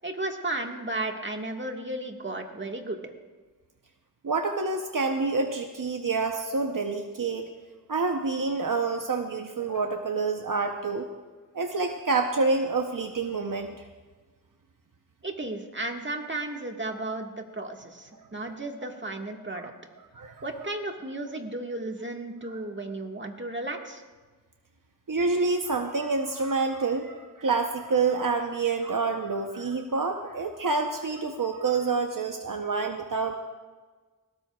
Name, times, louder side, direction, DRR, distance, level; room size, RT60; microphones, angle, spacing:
voice 1, 0.0-3.0 15.2-19.7 20.4-24.0, right 2 dB, 35° right, 2 dB, 1.7 m, -34 dB
voice 2, 4.2-7.5 7.9-11.1 11.5-13.7 18.2-18.5 20.1-20.4 22.5-22.6 25.1-33.3, right 4 dB, 70° right, 4 dB, 0.8 m, -27 dB
20.0 x 18.0 x 2.4 m, 1.4 s
wide cardioid pair, 45°, 34 cm